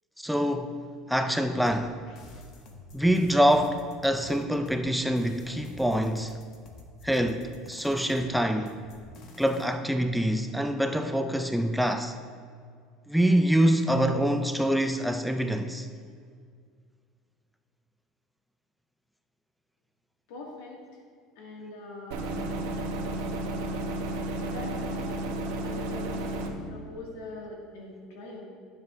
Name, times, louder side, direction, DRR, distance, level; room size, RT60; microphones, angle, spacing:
voice 1, 0.2-0.8 1.1-2.0 2.9-6.4 7.0-8.8 9.4-12.2 13.1-15.9, equal, ahead, 0.3 m, -25 dB
sound 1, 1.7-9.6, left 2 dB, 50° left, 1.0 m, -49 dB
voice 2, 20.3-21.0 21.4-22.4 24.4-25.3 25.6-26.3 26.7-28.5, left 2 dB, 80° left, 2.1 m, -42 dB
sound 2, 22.1-26.5, right 1 dB, 80° right, 1.0 m, -32 dB
11.5 x 7.3 x 2.6 m
supercardioid pair, 135°, 0 cm